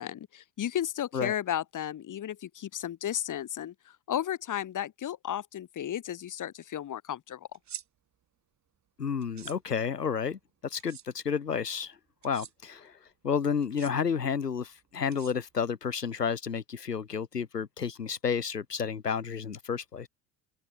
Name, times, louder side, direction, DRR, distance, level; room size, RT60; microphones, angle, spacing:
voice 1, 0.0-3.7 4.1-7.5, left 11 dB, 40° left, 4.7 m, -34 dB
sound 1, 7.5-7.8 9.2-9.6 10.8-11.0 12.2-12.5 13.6-13.9 15.1-15.7, right 9 dB, 35° right, 4.0 m, -45 dB
voice 2, 9.0-12.0 12.2-13.0 13.2-20.1, left 6 dB, 85° left, 1.7 m, -31 dB
open air
figure-of-eight pair, 65°, 46 cm